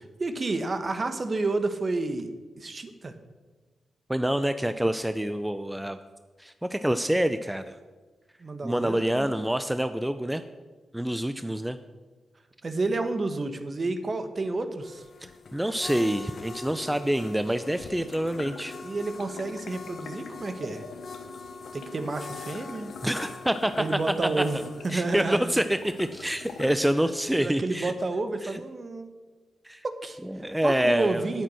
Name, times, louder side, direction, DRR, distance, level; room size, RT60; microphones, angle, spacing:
voice 1, 0.0-2.3 2.6-3.1 8.4-9.3 12.6-15.0 18.8-20.8 21.7-22.9 23.8-25.5 27.4-29.1 29.8-30.2 30.6-31.4, right 3 dB, 45° right, 9 dB, 1.2 m, -30 dB
voice 2, 4.1-6.0 6.4-7.7 8.6-10.4 10.9-11.8 15.5-18.7 23.0-23.7 24.2-24.4 24.9-27.9 28.4-28.6 29.6-29.8 30.2-31.2, right 1 dB, 10° right, 10 dB, 0.6 m, -27 dB
sound 1, 14.8-27.3, left 4 dB, 60° left, 0.8 m, -44 dB
sound 2, 16.8-26.8, left 6 dB, 85° left, 1.0 m, -45 dB
9.0 x 8.7 x 6.3 m, 1.3 s
supercardioid pair, 50°, 0 cm